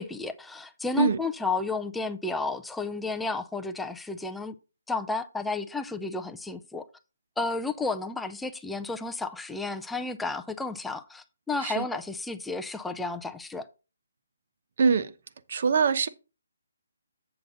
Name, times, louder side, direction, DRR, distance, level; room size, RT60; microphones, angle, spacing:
voice 1, 0.0-4.5 4.9-6.9 7.4-13.7, left 3 dB, 5° left, 0.4 m, -32 dB
voice 2, 14.8-15.1 15.5-16.1, right 5 dB, 50° right, 0.8 m, -23 dB
7.8 x 6.8 x 3.9 m
hypercardioid pair, 160°, 0 cm